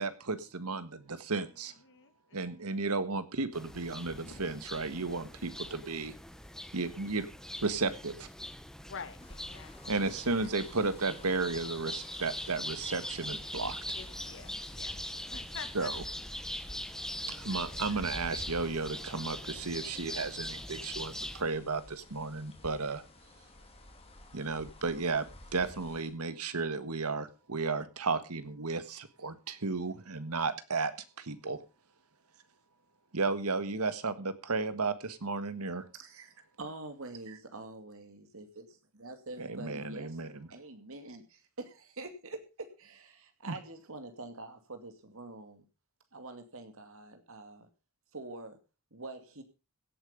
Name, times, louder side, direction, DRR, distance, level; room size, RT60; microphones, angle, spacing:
voice 1, 0.0-1.7 2.3-6.1 6.7-7.3 7.6-8.3 9.9-13.8 15.7-16.0 17.3-23.0 24.3-25.3 25.5-30.9 31.2-31.6 33.1-35.8 39.4-40.5 43.5-43.6, right 3 dB, 85° right, 12 dB, 1.6 m, -34 dB
voice 2, 1.8-2.7 4.2-4.4 8.9-10.5 13.9-15.0 15.3-15.9 17.3-17.8, left 5 dB, 60° left, 10 dB, 1.9 m, -48 dB
sound 1, 3.5-21.4, left 1 dB, 5° left, 1.0 m, -42 dB
sound 2, 9.2-26.1, left 1 dB, 25° left, 2.9 m, -51 dB
voice 3, 35.9-45.6 46.1-47.7 48.1-48.6 48.9-49.4, right 2 dB, 65° right, 8 dB, 2.5 m, -46 dB
16.5 x 8.7 x 5.3 m, 0.32 s
head